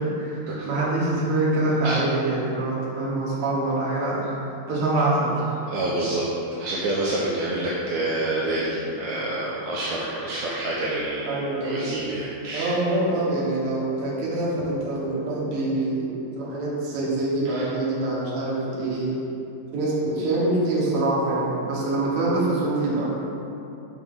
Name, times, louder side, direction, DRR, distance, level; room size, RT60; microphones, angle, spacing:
voice 1, 0.0-0.4 0.7-4.3 4.7-5.6 11.2-11.9 12.5-16.1 16.4-19.1 19.7-23.0, right 2 dB, 55° right, -6 dB, 1.7 m, -25 dB
voice 2, 5.7-6.3 6.6-12.8 17.4-17.7, right 1 dB, 80° right, -6 dB, 1.7 m, -28 dB
5.9 x 5.7 x 3.6 m, 2.7 s
omnidirectional pair, 3.9 m